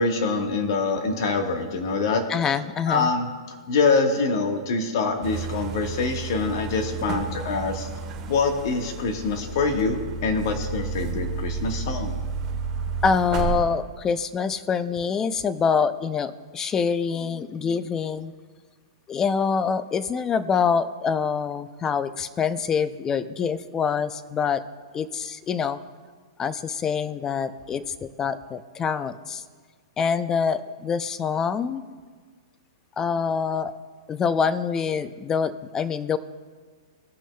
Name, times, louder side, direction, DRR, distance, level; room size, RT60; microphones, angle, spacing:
voice 1, 0.0-2.2 2.9-3.3 3.7-7.9 8.3-12.1, left 4 dB, 55° left, 4 dB, 1.4 m, -25 dB
voice 2, 2.3-3.1 13.0-18.3 19.1-24.6 24.9-25.8 26.4-29.4 30.0-31.8 33.0-33.7 34.1-36.2, left 6 dB, 20° left, 14 dB, 0.5 m, -25 dB
sound 1, 5.2-13.6, right 5 dB, 25° right, 1.6 m, -32 dB
18.0 x 6.1 x 2.3 m, 1.5 s
hypercardioid pair, 125°, 3 cm